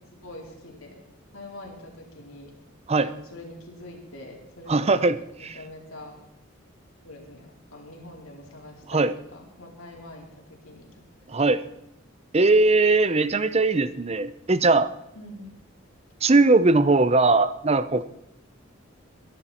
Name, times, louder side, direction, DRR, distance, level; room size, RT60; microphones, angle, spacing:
voice 1, 0.1-1.0 1.3-2.5 3.0-5.0 5.4-6.2 7.0-10.3 10.6-10.9 11.3-11.4 15.1-15.5, left 1 dB, 90° left, -1 dB, 4.3 m, -44 dB
voice 2, 4.7-5.2 5.4-5.6 8.9-9.2 11.3-11.6 12.3-14.9 16.2-18.0, right 3 dB, 30° right, 13 dB, 0.7 m, -20 dB
22.0 x 11.5 x 4.4 m, 0.82 s
head